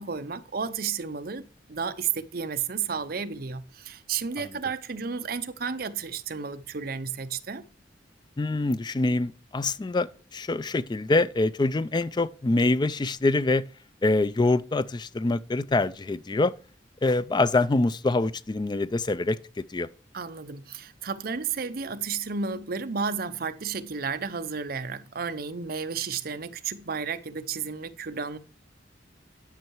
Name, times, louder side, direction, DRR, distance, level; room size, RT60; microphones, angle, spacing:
voice 1, 0.0-7.6 20.1-28.4, right 5 dB, 50° right, 0.7 m, -32 dB
voice 2, 8.4-13.6 14.0-16.5 17.0-19.4 19.7-19.9, left 2 dB, 25° left, 0.4 m, -25 dB
10.5 x 5.6 x 4.6 m
head